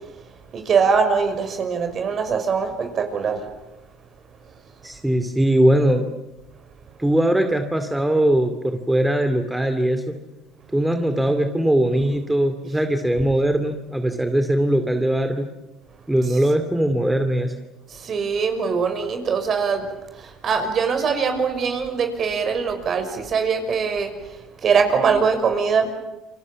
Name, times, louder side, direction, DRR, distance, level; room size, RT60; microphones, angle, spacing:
voice 1, 0.5-3.4 17.9-19.9 20.1-25.9, right 5 dB, 45° right, 7 dB, 5.8 m, -22 dB
voice 2, 4.8-6.1 7.0-10.2 10.7-15.5 16.1-17.5, right 1 dB, 5° right, 7 dB, 2.4 m, -20 dB
29.5 x 24.0 x 7.3 m, 1.0 s
hypercardioid pair, 75°, 0 cm